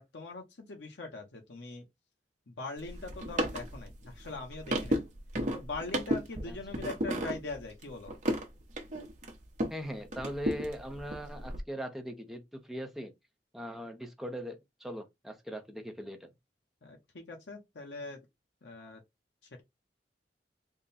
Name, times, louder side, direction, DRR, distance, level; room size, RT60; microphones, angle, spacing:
voice 1, 0.0-1.8 2.5-5.0 5.5-8.1 16.8-18.2 18.6-19.0, left 3 dB, 80° left, 0.9 m, -42 dB
sound 1, 2.8-9.8 10.1-11.6, equal, 45° right, 0.9 m, -34 dB
voice 2, 9.7-13.1 13.5-16.3, equal, ahead, 0.6 m, -40 dB
3.6 x 2.2 x 4.0 m
head